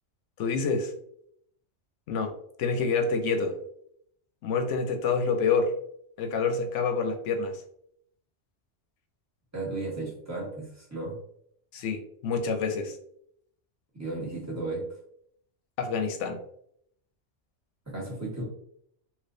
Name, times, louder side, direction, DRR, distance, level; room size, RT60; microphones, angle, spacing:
voice 1, 0.4-0.9 2.1-2.3 2.6-3.5 4.4-5.7 6.2-7.6 11.7-12.9 15.8-16.4, left 4 dB, 85° left, 7 dB, 0.9 m, -27 dB
voice 2, 9.5-11.2 13.9-14.8 17.9-18.4, right 2 dB, 15° right, -6 dB, 1.2 m, -34 dB
3.2 x 2.9 x 2.6 m, 0.70 s
omnidirectional pair, 1.2 m